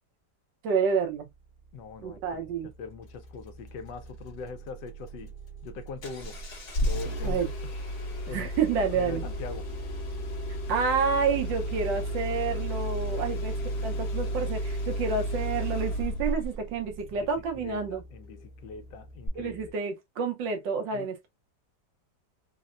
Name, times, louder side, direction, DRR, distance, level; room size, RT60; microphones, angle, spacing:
voice 1, 0.6-1.3 2.0-2.7 7.2-7.5 8.3-9.2 10.7-13.5 13.8-18.0 19.3-21.3, right 5 dB, 90° right, 1.6 m, -29 dB
sound 1, 0.8-19.7, right 3 dB, 65° right, 1.2 m, -48 dB
voice 2, 1.7-5.4 5.6-6.4 6.8-7.4 8.3-8.5 8.9-9.7 13.1-13.5 17.1-19.6 20.9-21.1, left 5 dB, 85° left, 1.3 m, -42 dB
Engine starting, 6.0-16.6 19.3-19.4, equal, 50° left, 1.2 m, -32 dB
3.9 x 2.1 x 2.5 m
omnidirectional pair, 1.9 m